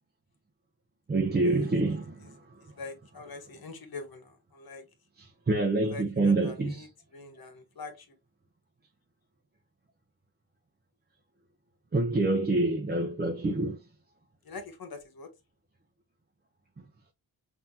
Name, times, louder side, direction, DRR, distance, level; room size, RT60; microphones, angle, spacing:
voice 1, 1.1-2.4 5.2-6.9 11.9-13.8, right 2 dB, 25° right, 0.7 m, -27 dB
voice 2, 2.6-4.8 5.8-6.9 7.1-8.1 14.4-15.3, left 3 dB, 70° left, 1.3 m, -44 dB
5.7 x 2.8 x 2.7 m
cardioid pair, 70°, 37 cm